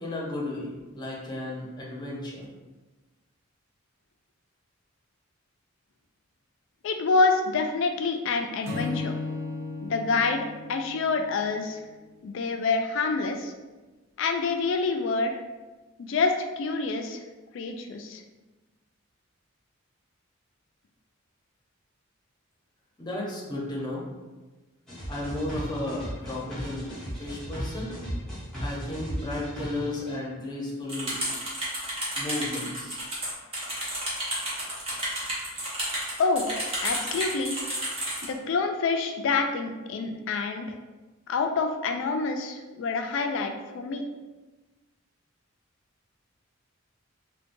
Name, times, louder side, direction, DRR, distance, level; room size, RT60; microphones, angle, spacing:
voice 1, 0.0-2.4 23.0-24.0 25.1-28.0 28.6-31.2 32.2-33.0, left 1 dB, 20° left, -4 dB, 0.7 m, -34 dB
voice 2, 6.8-9.1 9.8-11.8 12.2-13.5 14.2-15.4 16.0-17.2 17.5-18.2 36.2-36.4 36.8-37.6 38.2-40.7 41.3-44.0, left 4 dB, 60° left, 5 dB, 0.3 m, -27 dB
Acoustic guitar / Strum, 8.6-12.0, left 3 dB, 90° right, 0.8 m, -36 dB
sound 1, 24.9-30.2, equal, ahead, 1.0 m, -36 dB
sound 2, 30.9-38.3, right 1 dB, 25° right, 0.8 m, -31 dB
3.7 x 2.2 x 2.6 m, 1.2 s
head